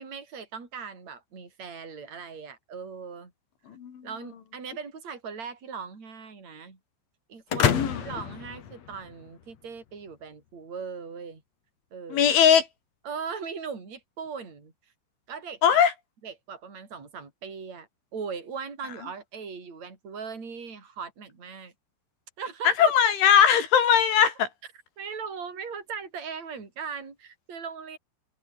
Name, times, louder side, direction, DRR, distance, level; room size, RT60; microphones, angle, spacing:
voice 1, 0.0-3.3 4.0-6.8 7.3-11.4 11.9-12.3 13.0-14.7 15.3-15.8 16.2-21.7 22.4-22.7 25.0-28.0, right 5 dB, 35° right, 6.8 m, -39 dB
sound 1, 7.5-9.4, left 8 dB, 50° left, 2.4 m, -28 dB
voice 2, 12.1-12.7 15.6-15.9 22.7-24.5, left 8 dB, 90° left, 6.1 m, -20 dB
omnidirectional pair, 5.3 m